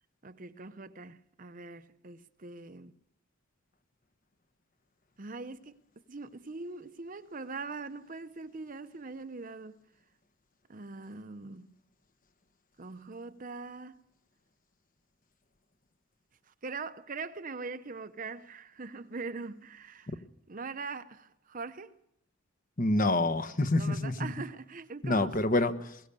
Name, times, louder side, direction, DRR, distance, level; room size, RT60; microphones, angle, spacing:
voice 1, 0.2-2.9 5.2-5.8 6.1-9.7 10.7-11.7 12.8-14.0 16.6-20.1 20.5-22.0 23.8-25.4, right 4 dB, 40° right, 0.7 m, -42 dB
voice 2, 22.8-24.3 25.0-26.0, left 2 dB, 40° left, 1.2 m, -27 dB
22.0 x 18.0 x 6.8 m
head